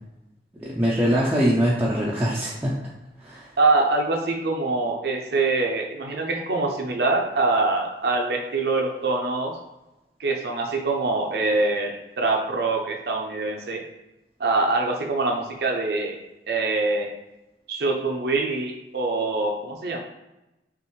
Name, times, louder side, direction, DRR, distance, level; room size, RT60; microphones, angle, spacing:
voice 1, 0.6-2.7 3.2-3.5, equal, 10° right, -7 dB, 0.5 m, -22 dB
voice 2, 3.6-9.6 10.2-13.8 14.4-16.2 16.5-17.1 17.7-20.0, right 3 dB, 65° right, 1 dB, 0.6 m, -24 dB
5.4 x 2.5 x 3.1 m, 0.97 s
head